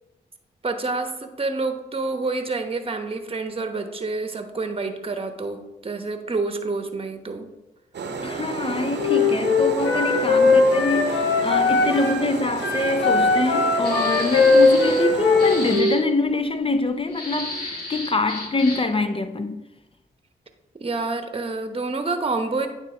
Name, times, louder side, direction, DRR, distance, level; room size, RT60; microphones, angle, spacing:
voice 1, 0.6-7.5 20.8-22.7, right 3 dB, 30° right, 1.0 m, -28 dB
sound 1, 7.9-15.8, right 4 dB, 65° right, 0.8 m, -31 dB
voice 2, 8.2-19.6, left 3 dB, 30° left, 0.6 m, -25 dB
Wind instrument woodwind instrument, 8.9-12.2 12.6-16.0, left 3 dB, 80° left, 1.2 m, -19 dB
sound 2, 13.8-15.1 15.4-16.0 17.1-19.0, left 2 dB, 55° left, 2.1 m, -33 dB
9.0 x 3.0 x 4.4 m
supercardioid pair, 40°, 19 cm